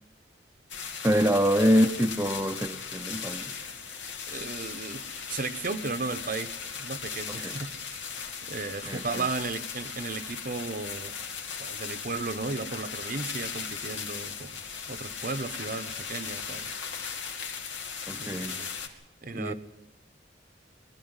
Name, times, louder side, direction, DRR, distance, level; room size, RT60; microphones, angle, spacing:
sound 1, 0.7-18.9, left 6 dB, 80° left, 2.7 m, -37 dB
voice 1, 1.0-3.6 7.3-7.6 8.9-9.3 18.1-18.6 19.3-19.5, equal, 10° right, 0.8 m, -25 dB
voice 2, 4.3-8.0 8.4-11.2 11.6-14.6 14.9-16.7 18.2-18.7 19.2-19.5, right 3 dB, 50° right, 1.0 m, -35 dB
22.5 x 13.5 x 9.8 m
head